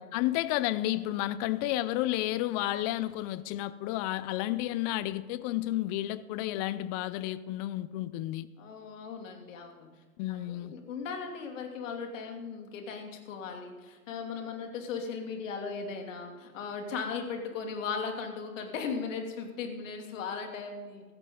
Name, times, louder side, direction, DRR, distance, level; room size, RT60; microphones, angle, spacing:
voice 1, 0.0-8.5 10.2-10.7, left 15 dB, 30° left, 0.5 m, -31 dB
voice 2, 8.6-9.9 10.3-21.0, left 5 dB, 60° left, 2.8 m, -37 dB
16.5 x 13.5 x 3.8 m
hypercardioid pair, 110°, 43 cm